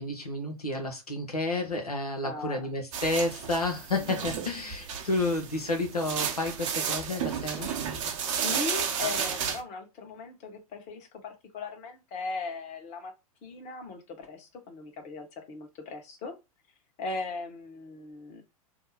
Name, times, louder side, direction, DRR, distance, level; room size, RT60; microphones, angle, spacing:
voice 1, 0.0-7.7, left 2 dB, 90° left, 0.8 m, -30 dB
voice 2, 2.2-2.7 8.2-13.1 13.4-16.3 17.0-18.4, left 3 dB, 35° left, 1.0 m, -38 dB
sound 1, 2.9-9.6, right 7 dB, 55° right, 0.7 m, -32 dB
2.7 x 2.1 x 4.0 m
figure-of-eight pair, 90°, 19 cm